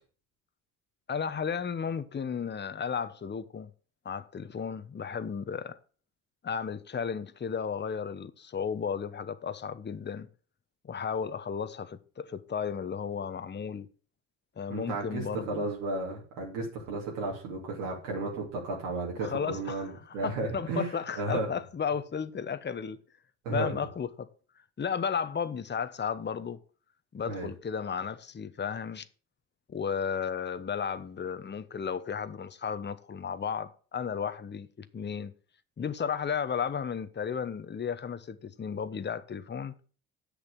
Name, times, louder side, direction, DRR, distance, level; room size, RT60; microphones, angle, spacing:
voice 1, 1.1-3.7 4.0-5.8 6.4-10.3 10.8-13.9 14.6-15.7 19.2-23.0 23.5-24.3 24.8-26.6 27.1-29.1 29.7-35.3 35.8-39.7, left 6 dB, 30° left, 1.1 m, -34 dB
voice 2, 14.7-21.5 23.4-23.8 27.3-27.5, right 2 dB, 80° right, 2.8 m, -34 dB
8.0 x 6.7 x 7.3 m
hypercardioid pair, 50°, 36 cm